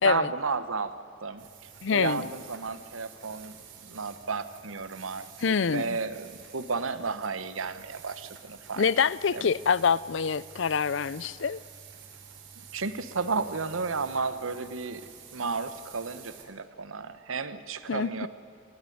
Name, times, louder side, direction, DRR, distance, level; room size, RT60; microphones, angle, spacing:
voice 1, 0.0-0.9 1.2-1.4 1.9-3.6 3.8-8.8 9.3-9.5 12.6-15.0 15.3-18.3, right 4 dB, 90° right, 1.1 m, -32 dB
sound 1, 1.4-16.5, right 7 dB, 70° right, 3.2 m, -50 dB
voice 2, 1.8-2.3 5.4-6.0 8.8-11.6 17.9-18.3, left 6 dB, 65° left, 0.5 m, -26 dB
28.5 x 13.0 x 9.4 m
head